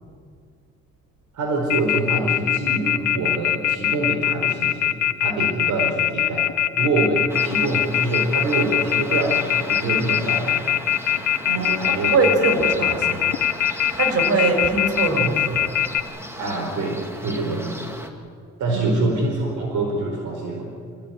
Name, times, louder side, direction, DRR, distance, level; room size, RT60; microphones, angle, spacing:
voice 1, 1.3-4.9 5.2-6.5 6.8-10.7 11.6-12.1 12.5-13.0 16.4-17.9 18.6-20.7, right 2 dB, 75° right, 1 dB, 4.7 m, -25 dB
Telephone, 1.7-16.0, left 11 dB, 75° left, 1.0 m, -21 dB
sound 1, 7.3-18.1, equal, 10° right, 2.7 m, -37 dB
voice 2, 11.4-13.2 13.9-15.7 18.7-19.0, right 3 dB, 55° right, 4 dB, 6.0 m, -22 dB
26.5 x 16.5 x 9.6 m, 2.1 s
cardioid pair, 90°, 30 cm